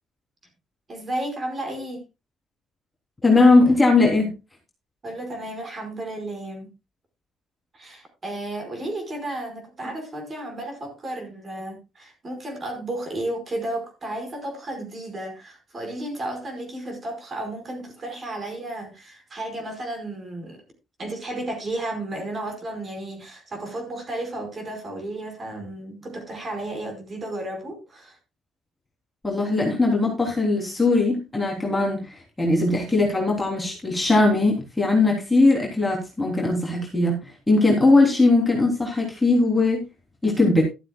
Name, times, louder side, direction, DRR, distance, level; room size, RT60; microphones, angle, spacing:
voice 1, 0.9-2.0 5.0-6.7 7.7-20.6 21.0-28.2, right 1 dB, 25° right, 5 dB, 4.8 m, -33 dB
voice 2, 3.2-4.3 29.2-39.8 40.2-40.6, left 2 dB, 10° left, -1 dB, 3.2 m, -20 dB
14.0 x 13.0 x 2.3 m, 0.26 s
cardioid pair, 160°, 0 cm